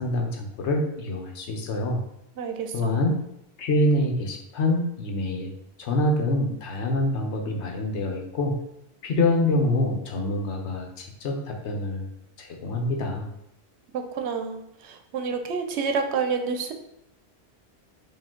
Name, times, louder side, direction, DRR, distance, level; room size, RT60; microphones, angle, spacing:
voice 1, 0.0-2.0 2.7-3.2 3.6-5.5 5.8-8.6 9.0-12.1 12.4-13.3, left 1 dB, 85° left, 3 dB, 1.1 m, -26 dB
voice 2, 2.4-3.0 13.9-16.7, right 5 dB, 85° right, 5 dB, 0.9 m, -29 dB
4.9 x 2.7 x 3.7 m, 0.83 s
omnidirectional pair, 1.1 m